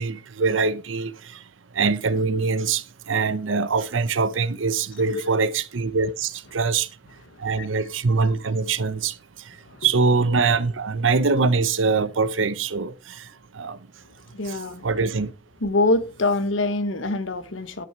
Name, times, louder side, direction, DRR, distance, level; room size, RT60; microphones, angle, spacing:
voice 1, 0.0-1.4 1.7-6.9 7.4-9.2 9.4-9.6 9.8-13.3 13.5-13.8 14.4-15.3, right 4 dB, 90° right, 0.7 m, -23 dB
voice 2, 14.3-14.9 15.6-17.9, left 2 dB, 85° left, 1.2 m, -25 dB
12.5 x 6.2 x 4.4 m
head